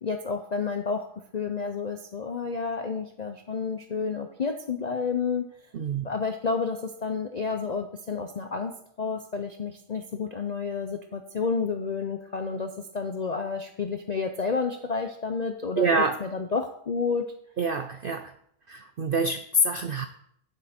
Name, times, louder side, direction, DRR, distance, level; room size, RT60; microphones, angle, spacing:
voice 1, 0.0-1.1 1.3-5.5 6.0-8.7 9.0-15.9 16.2-17.3, left 5 dB, 60° left, 6 dB, 0.4 m, -30 dB
voice 2, 5.7-6.0 15.8-16.2 17.6-18.3 18.7-20.1, right 2 dB, 70° right, 8 dB, 0.5 m, -26 dB
9.3 x 7.8 x 4.2 m, 0.68 s
omnidirectional pair, 1.6 m